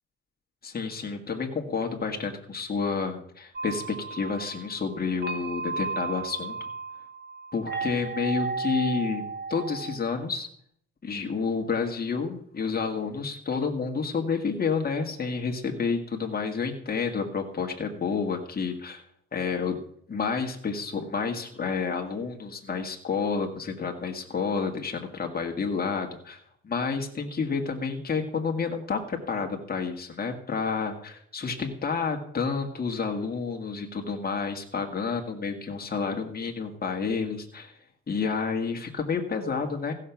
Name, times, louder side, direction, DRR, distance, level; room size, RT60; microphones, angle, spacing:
voice 1, 0.6-6.6 7.5-9.2 9.5-10.5 11.0-19.0 19.3-19.8 20.1-26.4 26.6-37.7 38.1-39.9, left 5 dB, 30° left, 3 dB, 1.9 m, -30 dB
sound 1, 3.5-10.0, right 4 dB, 35° right, 1.5 m, -34 dB
15.5 x 6.6 x 5.9 m, 0.66 s
cardioid pair, 90°, 30 cm